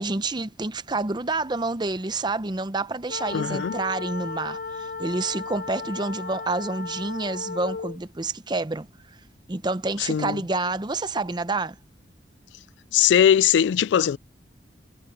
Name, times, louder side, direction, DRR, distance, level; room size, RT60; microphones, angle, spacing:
voice 1, 0.0-8.9 9.5-11.8, right 3 dB, 25° right, 0.7 m, -28 dB
sound 1, 3.1-8.0, left 4 dB, 55° left, 1.0 m, -34 dB
voice 2, 3.3-3.7 10.0-10.4 12.9-14.2, left 9 dB, 80° left, 0.3 m, -20 dB
head